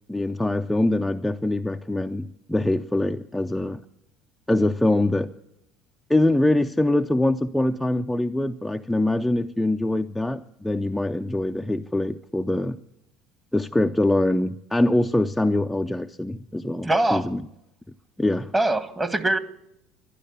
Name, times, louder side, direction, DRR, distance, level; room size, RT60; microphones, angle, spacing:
voice 1, 0.1-3.8 4.5-5.3 6.1-12.8 13.5-17.4 18.2-18.5, left 1 dB, 5° left, 5 dB, 0.5 m, -23 dB
voice 2, 16.8-17.3 18.5-19.4, right 2 dB, 15° right, 10 dB, 1.6 m, -22 dB
12.0 x 11.5 x 8.2 m, 0.83 s
hypercardioid pair, 75°, 0 cm